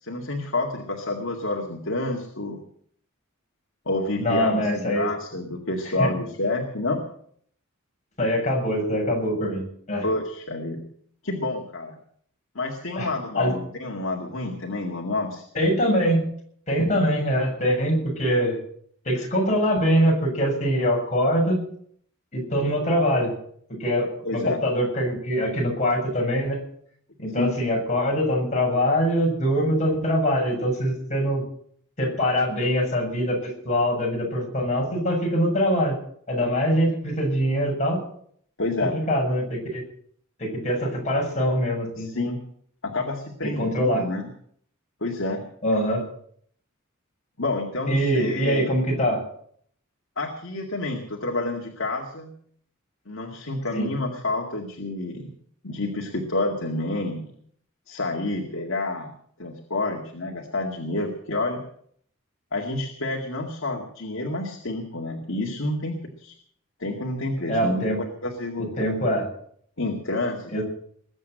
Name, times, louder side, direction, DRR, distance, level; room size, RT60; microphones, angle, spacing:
voice 1, 0.0-2.6 3.9-7.0 10.0-10.8 11.2-12.0 12.5-15.4 24.2-24.6 27.4-27.5 38.6-39.0 42.0-42.4 42.8-44.3 45.0-45.4 47.4-48.8 50.2-52.3 53.1-55.3 55.6-57.3 57.9-59.1 59.4-61.6 62.5-66.4 66.8-68.7 69.8-70.6, left 2 dB, 70° left, 1 dB, 2.1 m, -29 dB
voice 2, 4.2-5.1 6.0-6.1 8.2-10.1 13.0-13.1 13.4-13.5 15.5-16.3 16.7-18.6 19.1-21.7 22.3-23.3 23.8-26.6 27.2-31.4 32.0-36.0 36.3-38.0 38.9-39.8 40.4-42.1 43.6-44.1 45.6-46.0 47.9-49.2 53.7-53.9 67.5-68.0 68.8-69.3 70.5-70.6, equal, 35° left, -1 dB, 7.1 m, -23 dB
21.0 x 8.2 x 7.7 m, 0.63 s
head